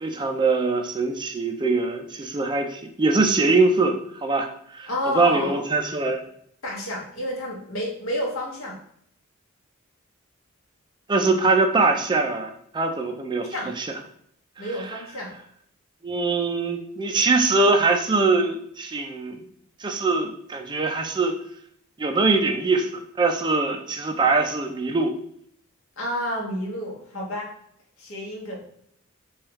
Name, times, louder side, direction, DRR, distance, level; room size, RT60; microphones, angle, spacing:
voice 1, 0.0-4.5 4.7-4.9 5.1-6.2 11.1-13.9 16.0-19.4 19.8-21.4 22.0-22.9 23.2-25.1, right 3 dB, 20° right, 4 dB, 0.3 m, -22 dB
voice 2, 4.9-5.6 6.6-8.8 13.5-13.7 14.6-15.4 26.0-27.5 28.0-28.7, left 1 dB, 75° left, -3 dB, 1.0 m, -30 dB
3.1 x 2.3 x 3.0 m, 0.68 s
head